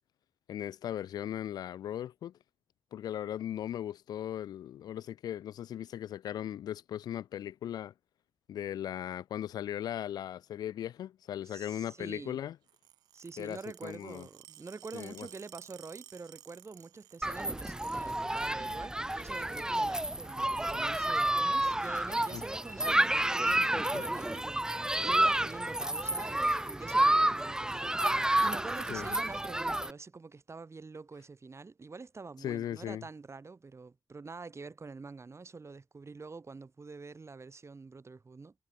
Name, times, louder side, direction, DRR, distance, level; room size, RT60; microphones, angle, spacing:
voice 1, 0.5-2.3 2.9-7.9 8.5-12.6 13.4-14.3 14.9-15.3 22.3-22.4 23.7-24.1 28.9-29.2 32.4-33.0, left 11 dB, 80° left, 1.2 m, -38 dB
voice 2, 11.4-12.4 13.1-38.5, right 4 dB, 45° right, 3.9 m, -46 dB
sound 1, 12.7-18.6 18.9-19.5 20.2-20.7 21.8-22.0 23.0-23.3 23.5-23.7 23.9-24.0 24.3-24.8 25.4-25.5 26.5-26.6, right 13 dB, 85° right, 6.3 m, -56 dB
Human group actions, 17.2-29.9, right 1 dB, 10° right, 0.4 m, -30 dB
supercardioid pair, 40°, 7 cm